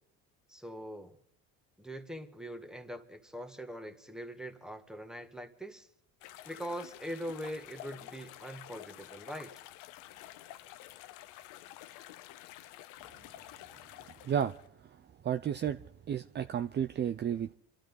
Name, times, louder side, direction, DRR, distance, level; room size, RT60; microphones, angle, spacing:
voice 1, 0.5-1.2 1.8-5.9 6.5-9.5, equal, ahead, 1.8 m, -42 dB
sound 1, 6.2-14.7, left 14 dB, 80° left, 0.9 m, -50 dB
voice 2, 15.2-15.8 16.1-17.5, right 9 dB, 35° right, 0.6 m, -32 dB
27.5 x 12.5 x 4.0 m
cardioid pair, 105°, 32 cm